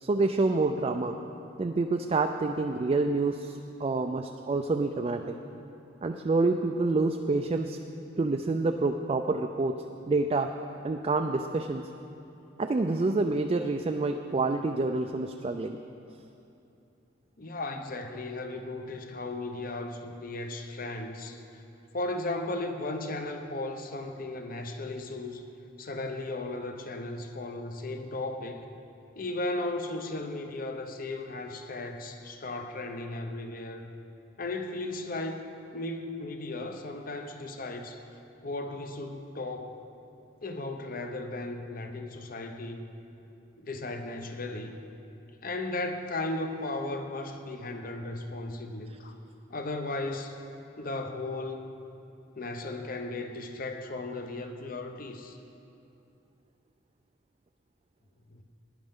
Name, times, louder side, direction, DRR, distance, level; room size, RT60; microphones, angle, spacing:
voice 1, 0.0-1.1 1.6-5.3 6.0-7.8 8.2-10.5 10.8-11.9 12.6-15.8, right 3 dB, 30° right, 4 dB, 0.3 m, -27 dB
voice 2, 17.4-21.4 21.9-25.4 25.8-28.7 29.2-33.9 34.4-38.0 38.4-39.8 40.4-42.8 43.6-44.8 45.4-49.2 49.5-50.4 50.8-51.8 52.4-55.4 58.3-58.4, left 2 dB, 45° left, 6 dB, 0.8 m, -36 dB
16.0 x 10.5 x 3.7 m, 2.7 s
head